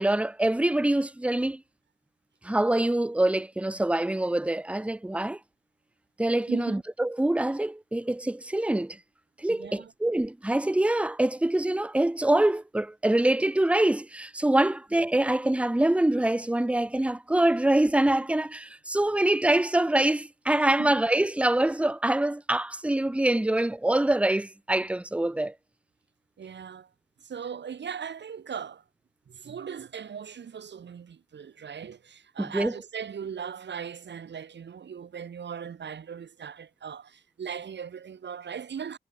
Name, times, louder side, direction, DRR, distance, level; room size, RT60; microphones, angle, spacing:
voice 1, 0.0-1.6 2.4-5.4 6.2-9.0 9.4-25.5 32.4-32.7, right 1 dB, 5° right, 0.6 m, -25 dB
voice 2, 6.5-6.8 9.5-9.9 20.5-21.0 26.4-26.9 27.2-28.8 29.3-39.0, right 7 dB, 65° right, 0.7 m, -39 dB
cardioid pair, 40°, 19 cm